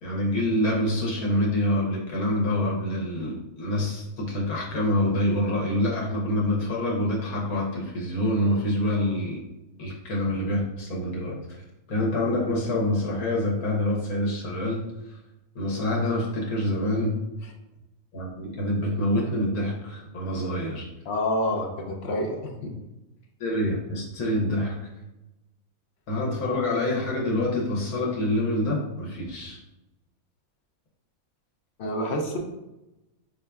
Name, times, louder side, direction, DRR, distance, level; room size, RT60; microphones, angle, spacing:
voice 1, 0.0-9.4 9.8-11.4 11.9-14.8 15.5-17.2 18.1-20.9 23.4-24.8 26.1-29.6, left 1 dB, 85° left, -2 dB, 1.3 m, -26 dB
voice 2, 21.1-22.7 31.8-32.4, left 1 dB, 60° left, 1 dB, 0.7 m, -28 dB
3.8 x 3.6 x 2.2 m, 0.96 s
omnidirectional pair, 1.5 m